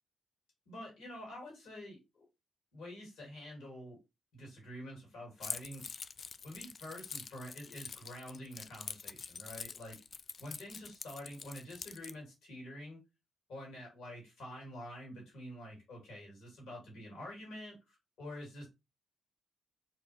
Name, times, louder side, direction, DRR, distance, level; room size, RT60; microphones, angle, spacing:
voice 1, 0.7-2.0 2.7-4.0 4.3-5.9 6.4-10.0 10.4-13.0 13.5-18.7, left 1 dB, 75° left, -1 dB, 2.4 m, -47 dB
Keys jangling, 5.4-12.1, left 5 dB, 55° left, 0.3 m, -45 dB
4.3 x 2.5 x 3.3 m, 0.24 s
hypercardioid pair, 45°, 0 cm